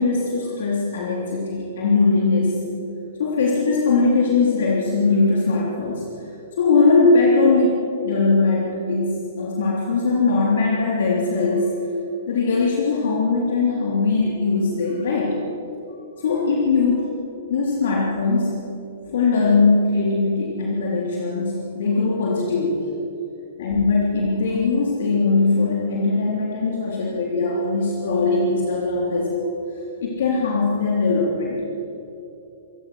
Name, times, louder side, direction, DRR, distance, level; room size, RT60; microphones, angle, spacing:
voice 1, 0.0-2.6 3.2-6.0 6.6-11.7 12.3-15.4 16.2-17.1 17.5-18.7 19.1-22.9 23.6-29.5 30.0-31.6, left 3 dB, 60° left, -3 dB, 3.5 m, -20 dB
26.0 x 16.0 x 6.3 m, 2.8 s
figure-of-eight pair, 115°, 0 cm